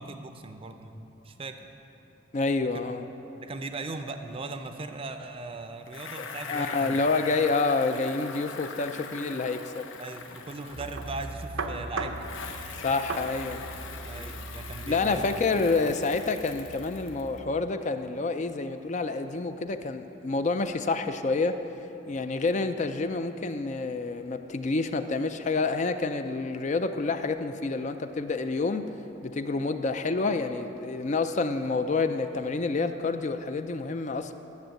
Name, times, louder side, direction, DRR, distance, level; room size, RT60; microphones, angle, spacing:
voice 1, 0.0-1.6 2.7-2.8 3.4-7.0 10.0-12.1 14.0-15.4, right 3 dB, 30° right, 8 dB, 0.5 m, -39 dB
voice 2, 2.3-3.0 6.2-9.9 12.8-13.6 14.9-21.6 22.1-28.8 29.2-34.3, left 3 dB, 35° left, 8 dB, 0.4 m, -28 dB
Bicycle, 5.9-11.7 12.2-17.4, left 5 dB, 75° left, 0.8 m, -42 dB
sound 1, 10.7-17.6, right 3 dB, 90° right, 0.8 m, -39 dB
10.5 x 7.2 x 7.6 m, 3.0 s
head